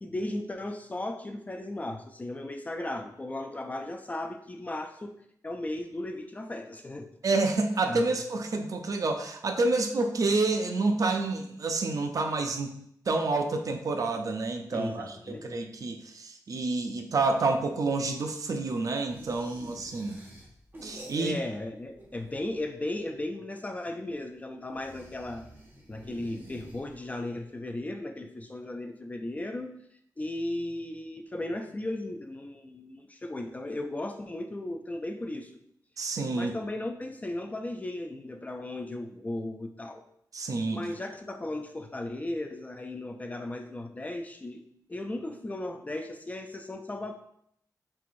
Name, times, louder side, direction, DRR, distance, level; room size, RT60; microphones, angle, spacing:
voice 1, 0.0-7.1 7.9-8.0 14.7-15.6 21.2-25.4 25.9-29.7 30.2-35.5 36.3-40.0 40.7-44.6 44.9-47.1, left 1 dB, 20° left, 5 dB, 0.4 m, -36 dB
voice 2, 7.2-12.7 13.1-20.2 20.8-21.4 36.0-36.5 40.3-40.8, right 3 dB, 55° right, 5 dB, 0.5 m, -28 dB
sound 1, 19.1-21.7 21.9-22.7 24.7-27.3, right 1 dB, 30° right, 1.0 m, -49 dB
4.5 x 3.5 x 2.5 m, 0.71 s
wide cardioid pair, 120°, 7 cm